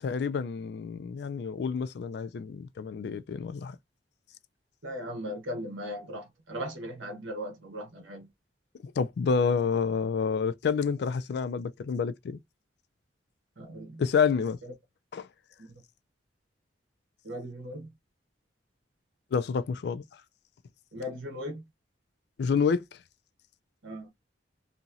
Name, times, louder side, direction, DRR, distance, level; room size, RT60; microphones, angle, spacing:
voice 1, 0.0-3.8 8.8-12.4 14.0-14.6 15.1-15.3 19.3-20.0 22.4-22.8, left 5 dB, 60° left, 0.3 m, -28 dB
voice 2, 4.8-8.3 13.6-14.0 17.2-17.9 20.9-21.6 23.8-24.1, equal, 85° right, 1.0 m, -38 dB
2.9 x 2.6 x 2.4 m
head